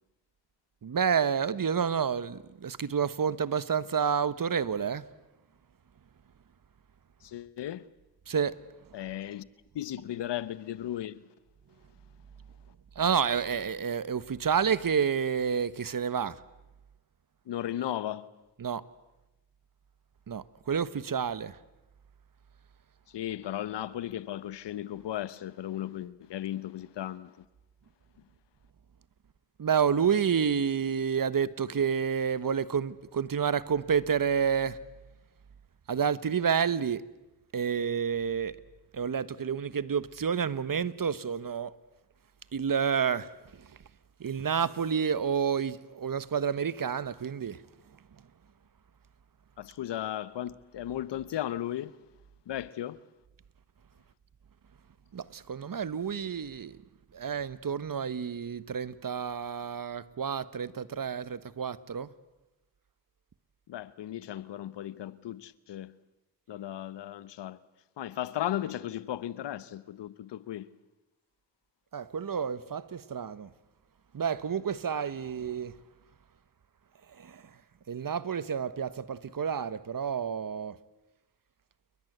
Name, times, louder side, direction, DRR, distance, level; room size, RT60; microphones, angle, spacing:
voice 1, 0.8-5.1 8.3-8.6 12.9-16.4 18.6-18.8 20.3-21.6 29.6-34.8 35.9-37.0 37.5-38.5 38.9-41.7 42.5-43.8 44.2-47.6 55.1-56.8 57.1-62.1 71.9-73.5 74.1-75.8 77.1-77.6 77.9-80.8, right 7 dB, 55° right, 1.3 m, -29 dB
voice 2, 7.2-7.9 8.9-9.5 9.7-11.2 17.5-18.3 23.1-27.4 49.6-52.0 52.5-53.0 63.7-65.9 66.5-67.6 68.0-70.7, left 12 dB, 85° left, 1.0 m, -36 dB
29.0 x 22.0 x 8.1 m
cardioid pair, 45°, 41 cm